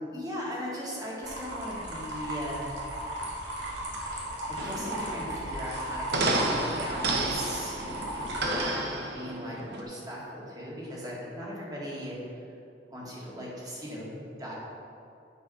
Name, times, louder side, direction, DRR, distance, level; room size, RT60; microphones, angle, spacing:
voice 1, 0.1-2.8 4.6-6.5 6.8-7.8 8.5-12.3 12.9-14.5, equal, 20° right, -5 dB, 1.9 m, -38 dB
sound 1, 1.2-8.6, right 1 dB, 85° right, 1.8 m, -36 dB
sound 2, 4.6-9.8, right 2 dB, 65° right, 0.9 m, -31 dB
8.3 x 4.5 x 5.5 m, 2.7 s
head